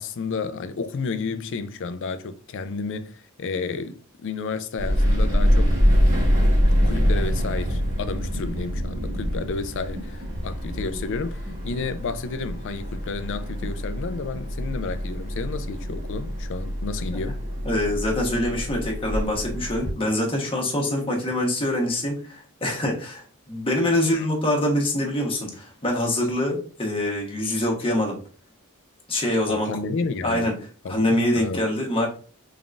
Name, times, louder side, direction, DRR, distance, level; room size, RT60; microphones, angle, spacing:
voice 1, 0.0-5.7 6.7-17.4 24.1-24.3 29.5-30.5 30.8-31.6, left 4 dB, 60° left, 0.4 m, -31 dB
sound 1, 4.8-19.9, equal, 35° right, 1.4 m, -25 dB
voice 2, 17.6-28.2 29.1-29.7 30.2-30.5 30.9-32.1, left 1 dB, 25° left, 1.1 m, -24 dB
3.8 x 3.5 x 2.5 m
head